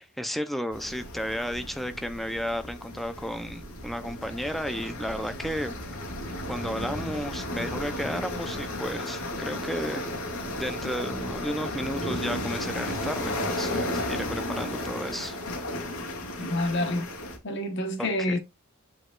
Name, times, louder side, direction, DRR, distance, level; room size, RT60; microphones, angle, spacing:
voice 1, 0.0-5.8 6.0-6.1 6.5-10.0 10.5-15.4 18.0-18.4, equal, ahead, 0.5 m, -33 dB
sound 1, 0.7-17.4, left 1 dB, 75° left, 2.5 m, -34 dB
voice 2, 16.5-17.1 17.4-18.4, left 1 dB, 55° left, 1.0 m, -27 dB
8.3 x 5.0 x 2.4 m
head